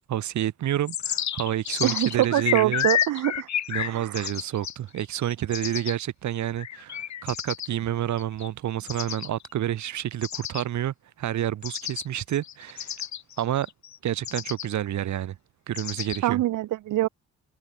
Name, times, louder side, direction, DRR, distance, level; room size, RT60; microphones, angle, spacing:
voice 1, 0.1-2.9 3.7-13.0 13.4-13.7 14.0-15.4 15.7-16.4, right 11 dB, 70° right, 2.7 m, -29 dB
sound 1, 0.9-6.0 6.6-7.7 8.2-8.5 8.9-9.5 10.2-10.6 11.6-12.1 12.3-14.0 14.2-14.7 15.8-16.2, left 10 dB, 65° left, 6.9 m, -31 dB
voice 2, 1.8-3.5 3.9-4.3 16.2-17.1, right 15 dB, 90° right, 7.4 m, -24 dB
cardioid pair, 90°, 30 cm